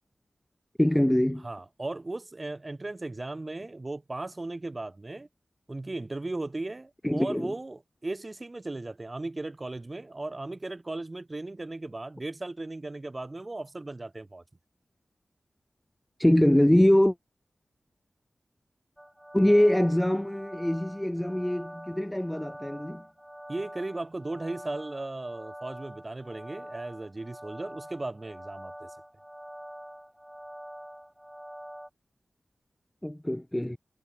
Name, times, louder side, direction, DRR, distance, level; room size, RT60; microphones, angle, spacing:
voice 1, 0.8-1.5 7.0-7.5 16.2-17.1 19.3-23.0 33.0-33.8, left 1 dB, 10° left, 0.4 m, -23 dB
voice 2, 1.4-5.3 5.7-14.4 23.5-28.9, right 2 dB, 35° right, 2.7 m, -36 dB
sound 1, 19.0-31.9, equal, 5° right, 7.8 m, -45 dB
cardioid pair, 55°, 0 cm